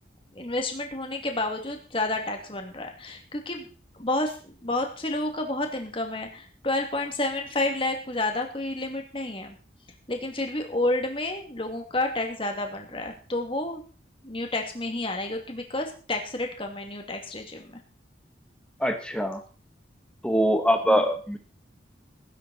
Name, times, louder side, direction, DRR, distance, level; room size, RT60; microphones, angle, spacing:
voice 1, 0.3-3.7 3.9-9.6 10.1-13.8 14.2-17.8 20.9-21.0, left 2 dB, 30° left, 3 dB, 2.7 m, -30 dB
voice 2, 18.8-19.4 20.2-21.4, equal, 5° left, 6 dB, 1.6 m, -23 dB
18.5 x 10.5 x 4.4 m, 0.38 s
head